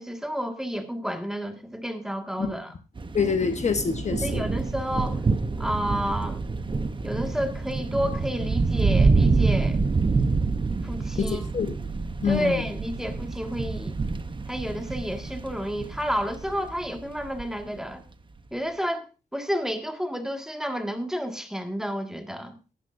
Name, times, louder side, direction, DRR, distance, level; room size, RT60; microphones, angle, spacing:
voice 1, 0.0-2.7 4.2-5.2 5.6-6.4 7.0-9.8 10.8-11.4 12.2-14.0 14.5-18.0 18.5-19.1 19.3-22.5, equal, 5° right, 5 dB, 1.7 m, -30 dB
sound 1, 3.0-17.5, right 4 dB, 30° right, 0.7 m, -27 dB
voice 2, 3.1-4.4 11.2-11.7 12.2-12.6, left 5 dB, 45° left, 8 dB, 1.0 m, -26 dB
17.5 x 10.5 x 2.5 m, 0.31 s
wide cardioid pair, 100°, 16 cm